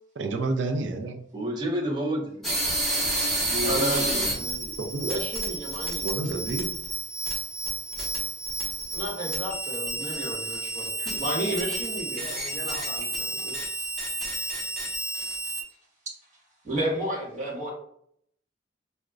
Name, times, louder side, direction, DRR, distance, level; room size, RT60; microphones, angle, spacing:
voice 1, 0.2-1.2 4.8-5.2 6.0-6.7 11.1-11.2, right 3 dB, 80° right, 5 dB, 0.4 m, -30 dB
voice 2, 1.3-2.6 3.2-4.7, equal, 25° right, 0 dB, 0.6 m, -31 dB
sound 1, 2.4-15.6, right 1 dB, ahead, 1.1 m, -30 dB
voice 3, 3.6-4.3 5.0-6.1 8.9-14.0 16.6-17.7, right 1 dB, 40° right, -4 dB, 1.3 m, -32 dB
voice 4, 11.9-13.7, left 1 dB, 65° left, 4 dB, 0.6 m, -46 dB
4.8 x 2.1 x 2.4 m, 0.67 s
head